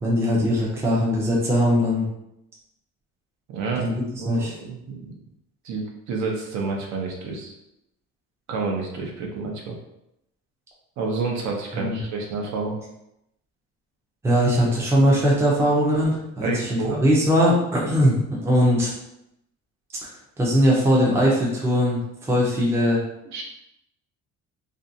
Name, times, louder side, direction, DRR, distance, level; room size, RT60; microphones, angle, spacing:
voice 1, 0.0-2.1 3.8-4.5 11.7-12.0 14.2-18.9 20.0-23.0, equal, 10° right, -4 dB, 0.5 m, -21 dB
voice 2, 3.5-3.9 4.2-5.1 5.6-7.5 8.5-9.8 11.0-12.8 16.4-17.0 23.3-23.4, right 4 dB, 65° right, 0 dB, 0.7 m, -29 dB
2.6 x 2.2 x 2.6 m, 0.82 s
cardioid pair, 160°, 31 cm